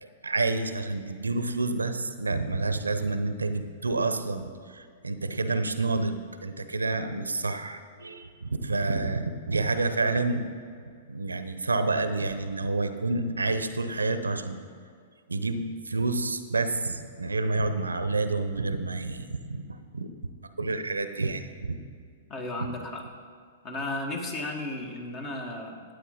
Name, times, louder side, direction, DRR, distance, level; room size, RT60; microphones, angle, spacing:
voice 1, 0.0-10.5 11.1-14.6 15.3-19.6 19.9-20.1 20.6-21.8, right 3 dB, 85° right, 10 dB, 0.7 m, -29 dB
voice 2, 22.3-23.0 23.6-25.8, left 2 dB, 30° left, 3 dB, 1.7 m, -34 dB
12.5 x 9.1 x 3.9 m, 2.2 s
figure-of-eight pair, 110°, 0 cm